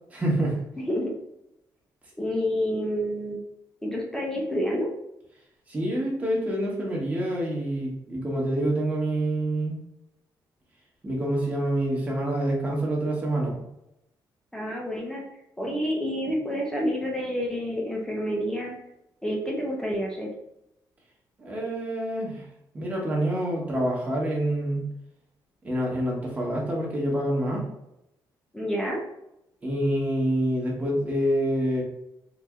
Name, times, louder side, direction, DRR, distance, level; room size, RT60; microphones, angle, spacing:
voice 1, 0.1-0.6 5.7-9.8 11.0-13.6 21.4-22.5 22.7-24.9 25.6-27.6 29.6-31.8, right 1 dB, 20° right, -3 dB, 1.1 m, -27 dB
voice 2, 0.8-1.1 2.2-3.4 3.8-4.9 14.5-15.2 15.6-18.8 19.2-20.3 28.5-29.0, equal, 5° left, -2 dB, 0.6 m, -28 dB
4.1 x 2.6 x 3.6 m, 0.84 s
cardioid pair, 170°, 8 cm